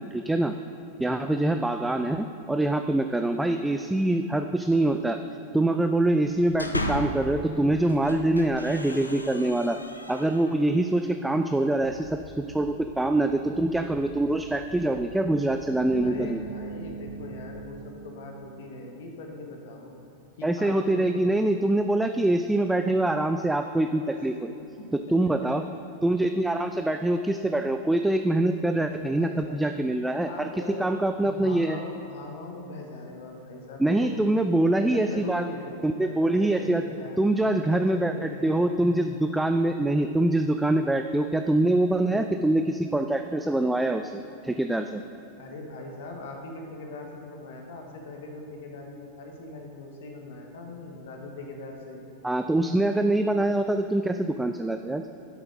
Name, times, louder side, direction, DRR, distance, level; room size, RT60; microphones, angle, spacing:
voice 1, 0.1-0.5 1.0-5.2 5.5-9.8 10.1-16.4 20.4-24.5 24.9-25.6 26.0-31.8 33.8-35.5 35.8-36.8 37.2-38.1 38.4-45.0 52.2-55.0, right 1 dB, 5° right, 7 dB, 0.3 m, -24 dB
voice 2, 1.0-1.4 16.0-19.9 20.4-21.2 24.8-24.9 25.4-25.5 28.8-29.6 30.3-30.9 31.2-34.1 34.7-38.9 45.4-52.0, left 2 dB, 55° left, 2 dB, 1.5 m, -40 dB
sound 1, 6.2-7.3 7.8-10.7, left 1 dB, 85° left, 0.6 m, -35 dB
sound 2, 11.8-17.6, equal, 25° left, 1.9 m, -49 dB
sound 3, 15.9-19.2, right 5 dB, 20° right, 1.3 m, -42 dB
12.0 x 7.4 x 4.0 m, 2.8 s
figure-of-eight pair, 90°, 0 cm